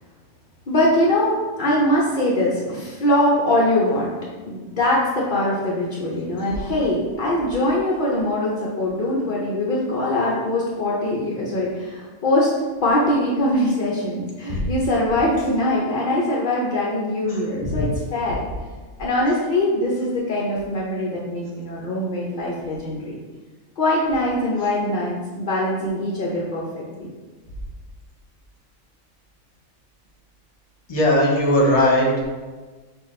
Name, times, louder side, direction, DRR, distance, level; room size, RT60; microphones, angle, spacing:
voice 1, 0.7-4.1 4.4-12.5 12.8-18.4 19.0-23.2 23.8-27.1, left 1 dB, 60° left, -5 dB, 0.5 m, -22 dB
voice 2, 17.3-17.9 30.9-32.1, left 1 dB, 30° left, -3 dB, 0.8 m, -19 dB
6.0 x 2.3 x 3.1 m, 1.3 s
omnidirectional pair, 1.5 m